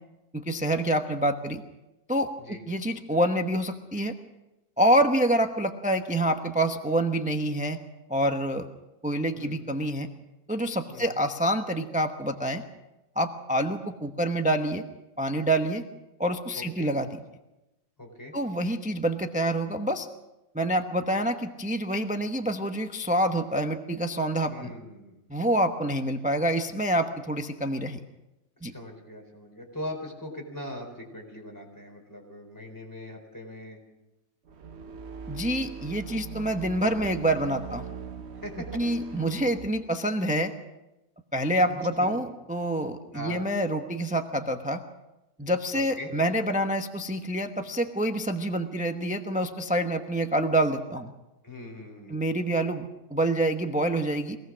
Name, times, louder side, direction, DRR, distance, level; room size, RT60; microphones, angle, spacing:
voice 1, 0.3-1.6 2.1-4.2 4.8-7.8 8.1-8.7 9.0-10.1 10.5-12.6 13.2-14.8 15.2-15.8 16.2-17.1 18.3-20.1 20.5-24.7 25.3-28.0 28.6-28.7 35.3-37.9 38.7-40.5 41.3-44.8 45.4-51.1 52.1-54.4, right 1 dB, 5° right, 5 dB, 0.8 m, -27 dB
voice 2, 10.9-11.2 16.6-16.9 18.0-18.3 24.4-25.2 28.6-33.8 38.4-38.7 42.0-42.1 43.1-43.4 45.7-46.1 51.4-52.3, left 1 dB, 15° left, 2 dB, 4.2 m, -41 dB
sound 1, 34.5-39.7, right 6 dB, 50° right, 1.2 m, -41 dB
24.0 x 18.0 x 6.2 m, 0.99 s
omnidirectional pair, 1.5 m